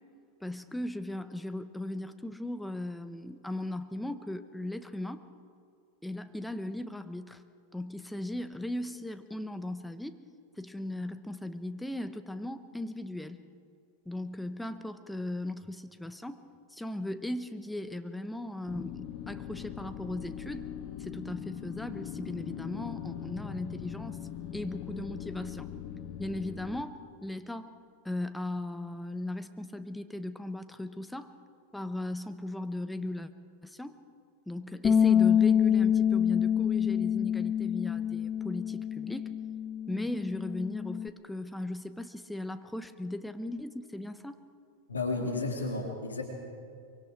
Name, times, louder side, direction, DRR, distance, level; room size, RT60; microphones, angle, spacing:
voice 1, 0.4-5.3 6.0-7.4 7.7-10.2 10.6-13.4 14.1-16.4 16.7-20.7 21.0-24.2 24.5-25.7 26.2-27.8 28.0-31.3 31.7-33.3 33.6-34.0 34.5-39.3 39.9-44.4, left 1 dB, 5° left, 10 dB, 1.0 m, -37 dB
sound 1, 18.7-26.8, left 9 dB, 45° left, 1.4 m, -41 dB
Bass guitar, 34.8-41.1, left 8 dB, 25° left, 0.6 m, -26 dB
voice 2, 44.9-46.2, left 3 dB, 85° left, 1 dB, 2.8 m, -32 dB
24.0 x 23.5 x 4.7 m, 2.4 s
figure-of-eight pair, 90°, 0 cm